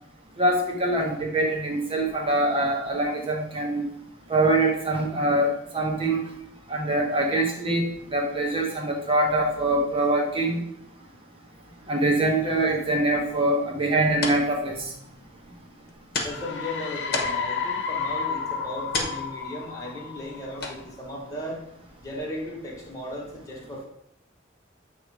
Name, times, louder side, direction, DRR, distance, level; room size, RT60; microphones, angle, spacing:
voice 1, 0.4-3.8 4.3-6.2 6.7-10.6 11.9-14.9, right 1 dB, 30° right, 0 dB, 1.1 m, -24 dB
sound 1, 13.8-23.0, left 3 dB, 50° left, 1.1 m, -37 dB
sound 2, 16.2-20.8, left 6 dB, 65° left, 0.8 m, -32 dB
voice 2, 16.2-21.6 22.0-23.8, left 1 dB, 20° left, -4 dB, 1.5 m, -36 dB
8.3 x 3.2 x 4.9 m, 0.76 s
head